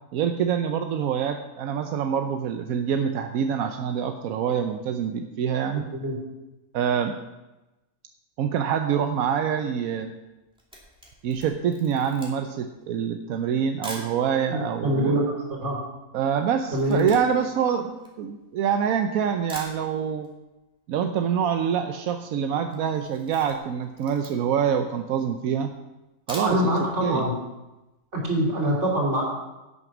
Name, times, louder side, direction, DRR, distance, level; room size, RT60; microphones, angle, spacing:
voice 1, 0.1-5.9 6.7-7.1 8.4-10.1 11.2-15.3 16.1-20.3 20.9-25.7 26.3-26.7 27.0-27.3, right 8 dB, 90° right, 6 dB, 1.1 m, -26 dB
Camera, 10.5-14.2 14.9-15.0 15.1-18.8 19.2-19.3 19.5-20.3 20.6-20.7 21.0-21.1 21.3-21.7 22.0-22.3 22.6-24.7 25.2-25.3 26.1-26.9 27.2-27.3 27.7-27.8, equal, 5° right, 2.5 m, -43 dB
voice 2, 14.5-15.8 16.7-17.1 26.4-27.3 28.1-29.2, right 1 dB, 55° right, -2 dB, 3.2 m, -24 dB
11.0 x 8.5 x 6.0 m, 1.0 s
omnidirectional pair, 1.4 m